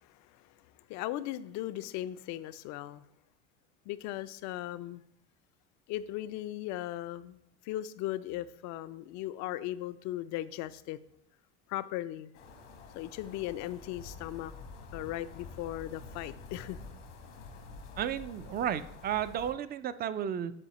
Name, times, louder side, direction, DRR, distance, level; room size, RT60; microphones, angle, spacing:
voice 1, 0.0-3.0 3.9-5.0 5.9-11.0 11.7-12.3 12.9-14.5 14.9-16.8, left 14 dB, 50° left, 0.5 m, -38 dB
sound 1, 12.3-19.5, left 3 dB, 85° left, 1.4 m, -48 dB
voice 2, 18.0-20.5, right 9 dB, 25° right, 0.4 m, -33 dB
9.9 x 4.1 x 3.0 m
hypercardioid pair, 80°, 36 cm